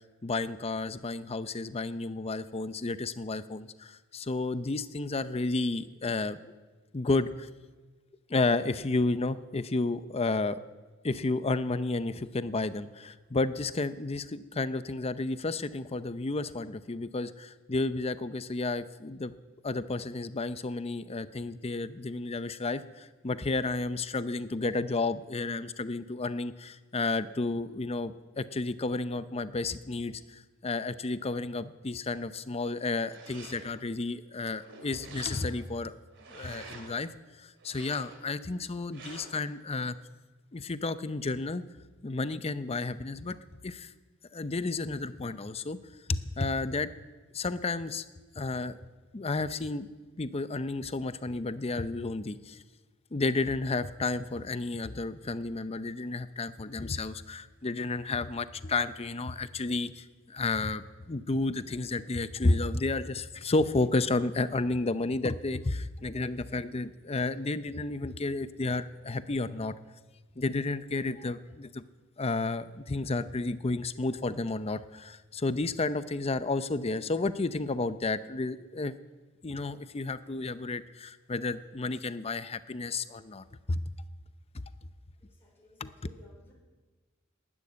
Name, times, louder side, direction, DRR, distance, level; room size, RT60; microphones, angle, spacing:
voice 1, 0.2-6.5 6.9-7.5 8.3-10.6 11.0-19.3 19.6-35.9 36.3-37.1 37.4-40.0 40.5-41.6 42.0-43.4 43.6-43.9 44.3-45.8 46.1-46.9 47.3-48.0 48.4-48.8 49.1-49.9 50.2-52.6 53.1-69.7 70.4-71.8 72.2-78.9 79.4-83.8 84.5-84.6 85.8-85.9, left 3 dB, 30° left, 13 dB, 0.6 m, -32 dB
sound 1, 33.0-33.9 34.4-35.7 36.1-37.0 37.6-38.4 38.9-39.5, right 3 dB, 65° right, 2.6 m, -49 dB
voice 2, 85.2-86.5, left 2 dB, 10° left, -3 dB, 4.5 m, -58 dB
12.5 x 11.0 x 9.5 m, 1.3 s
head